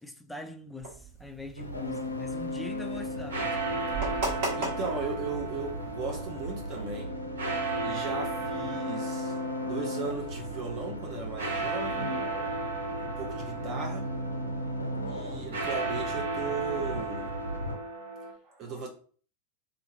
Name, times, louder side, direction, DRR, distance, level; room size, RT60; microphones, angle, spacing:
voice 1, 0.0-3.9 15.3-15.7, left 2 dB, 5° left, 0.3 m, -43 dB
sound 1, 0.8-6.9, right 3 dB, 50° right, 1.3 m, -38 dB
sound 2, 1.6-17.7, left 1 dB, 85° left, 0.4 m, -36 dB
sound 3, 3.0-18.3, right 3 dB, 65° right, 0.8 m, -36 dB
voice 2, 4.3-7.1 7.8-12.1 13.2-14.7 15.0-17.3 18.4-18.9, right 4 dB, 35° right, 0.6 m, -37 dB
2.8 x 2.7 x 2.6 m
figure-of-eight pair, 90°, 0 cm